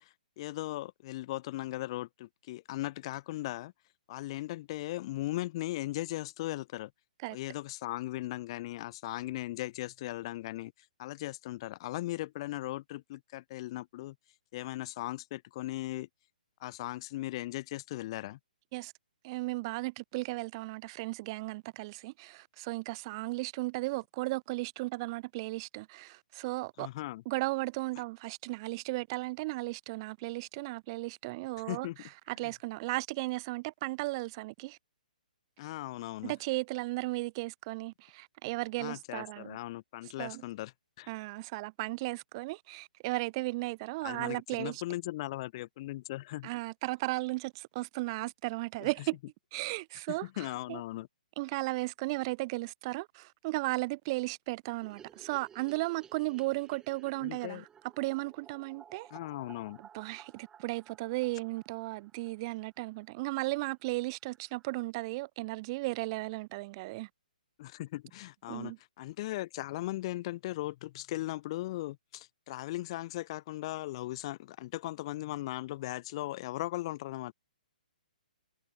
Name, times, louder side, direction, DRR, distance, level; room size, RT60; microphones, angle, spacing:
voice 1, 0.0-3.7 4.1-6.9 7.3-10.7 11.0-14.2 14.5-16.1 16.6-18.4 26.8-27.2 31.7-32.0 35.6-36.3 38.8-40.7 41.0-41.1 44.0-46.5 48.8-48.9 50.1-51.1 57.2-57.6 59.1-59.8 67.6-77.3, left 17 dB, 35° left, 0.4 m, -38 dB
voice 2, 19.2-26.9 27.3-31.9 32.3-34.8 36.2-39.6 40.2-40.4 41.1-44.8 46.4-49.2 49.5-50.8 51.4-57.6 58.0-59.1 59.8-67.1 68.5-68.8, right 22 dB, 30° right, 0.4 m, -35 dB
sound 1, 54.8-63.0 63.3-63.4 63.6-63.7 64.0-64.1 64.3-64.9, right 8 dB, 15° right, 1.8 m, -57 dB
hypercardioid pair, 140°, 5 cm